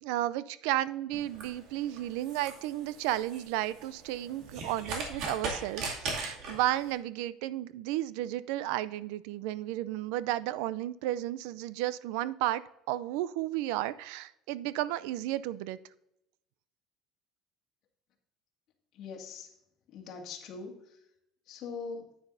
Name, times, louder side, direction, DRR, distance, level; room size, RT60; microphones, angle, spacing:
voice 1, 0.0-5.8 6.2-12.6 12.9-15.8, right 14 dB, 85° right, 17 dB, 0.4 m, -33 dB
sound 1, 1.1-6.9, right 3 dB, 60° right, 2.3 m, -39 dB
voice 2, 18.9-19.5 19.9-20.8 21.5-22.1, left 5 dB, 50° left, -1 dB, 2.0 m, -41 dB
9.6 x 9.3 x 2.6 m, 0.82 s
cardioid pair, 140°, 0 cm